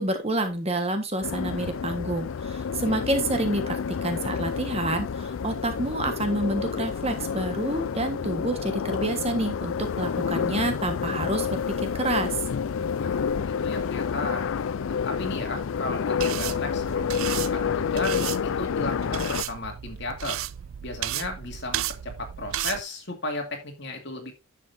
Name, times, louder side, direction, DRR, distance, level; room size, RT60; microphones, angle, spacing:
voice 1, 0.0-12.4, right 1 dB, 30° right, 7 dB, 1.4 m, -28 dB
sound 1, 1.2-19.4, left 6 dB, 70° left, 0.4 m, -29 dB
voice 2, 13.0-14.5 14.9-20.4 20.8-24.3, left 2 dB, 55° left, 3 dB, 2.6 m, -35 dB
sound 2, 16.2-22.8, right 12 dB, 75° right, 0.4 m, -34 dB
10.5 x 7.5 x 2.6 m, 0.22 s
head